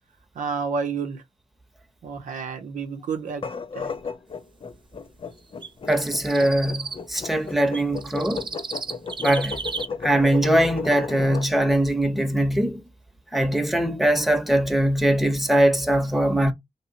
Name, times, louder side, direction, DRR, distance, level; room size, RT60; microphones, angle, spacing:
voice 1, 0.3-1.2 2.0-3.4 3.7-3.9, right 5 dB, 75° right, 0.6 m, -30 dB
sound 1, 3.3-11.5, left 5 dB, 40° left, 0.5 m, -34 dB
sound 2, 5.6-7.0 7.7-9.9, right 4 dB, 35° right, 0.6 m, -34 dB
voice 2, 5.9-8.5 9.2-9.6 10.0-12.8 13.3-16.5, right 1 dB, ahead, 0.9 m, -21 dB
3.0 x 2.9 x 2.8 m
supercardioid pair, 45°, 13 cm